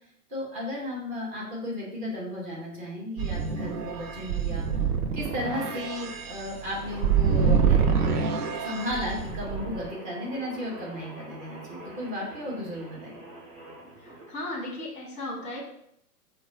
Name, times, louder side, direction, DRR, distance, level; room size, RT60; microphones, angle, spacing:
voice 1, 0.3-4.7 5.1-8.2 8.6-13.2, left 1 dB, 15° right, -4 dB, 0.7 m, -34 dB
sound 1, 3.2-9.9, right 6 dB, 70° right, 0.6 m, -26 dB
sound 2, 6.8-14.3, right 2 dB, 50° right, 1.4 m, -45 dB
voice 2, 14.3-15.6, left 1 dB, 15° left, -3 dB, 0.9 m, -35 dB
4.6 x 2.2 x 2.6 m, 0.74 s
figure-of-eight pair, 110°, 47 cm